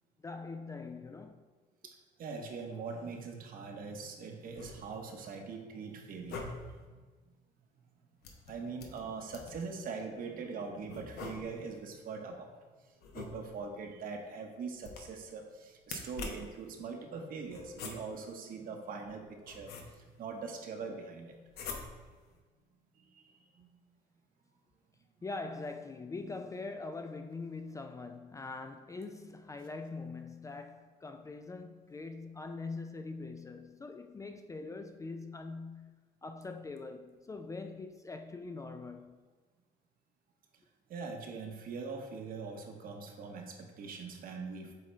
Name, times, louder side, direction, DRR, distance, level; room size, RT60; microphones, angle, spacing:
voice 1, 0.2-1.5 25.2-36.0 36.2-39.2, left 3 dB, 20° left, 0.3 m, -43 dB
voice 2, 2.2-6.5 6.9-7.0 8.5-12.5 13.1-21.4 23.0-23.7 40.9-44.7, right 4 dB, 60° right, 1.0 m, -42 dB
sound 1, 4.4-5.1 6.1-6.9 8.2-9.7 10.9-11.8 13.0-13.8 14.8-15.3 15.8-16.6 17.5-18.3 19.1-20.2 21.5-22.2, left 4 dB, 70° left, 0.9 m, -45 dB
7.8 x 3.8 x 3.2 m
cardioid pair, 110°, 17 cm